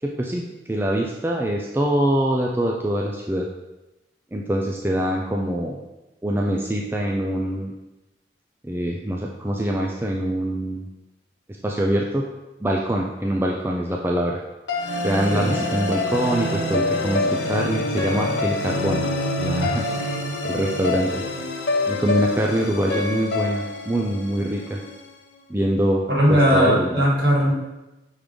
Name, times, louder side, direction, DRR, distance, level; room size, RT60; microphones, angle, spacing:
voice 1, 0.0-3.5 4.3-5.8 6.2-7.7 8.6-10.9 11.6-12.2 12.6-14.4 15.0-19.1 19.4-20.2 20.4-21.1 21.9-24.8 25.5-27.0, right 1 dB, 10° right, -1 dB, 0.4 m, -24 dB
sound 1, 14.7-25.0, left 2 dB, 70° left, 1.0 m, -26 dB
voice 2, 26.1-27.5, equal, 60° right, -4 dB, 1.9 m, -18 dB
6.3 x 3.7 x 5.1 m, 1.0 s
head